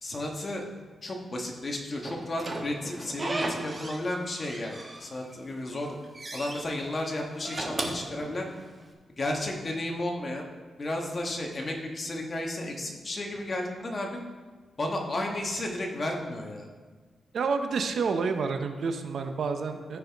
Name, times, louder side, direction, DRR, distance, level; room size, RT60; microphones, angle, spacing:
voice 1, 0.0-0.7 1.0-6.0 6.3-8.5 9.2-10.5 10.8-14.2 14.8-16.7, left 1 dB, 30° left, 1 dB, 1.3 m, -33 dB
Slam / Squeak, 2.0-4.1 4.4-5.3 5.7-6.6 7.3-8.8, right 2 dB, 25° right, 1.0 m, -36 dB
voice 2, 17.3-20.0, right 5 dB, 65° right, 7 dB, 0.7 m, -29 dB
14.0 x 5.7 x 3.5 m, 1.4 s
wide cardioid pair, 130°, 0 cm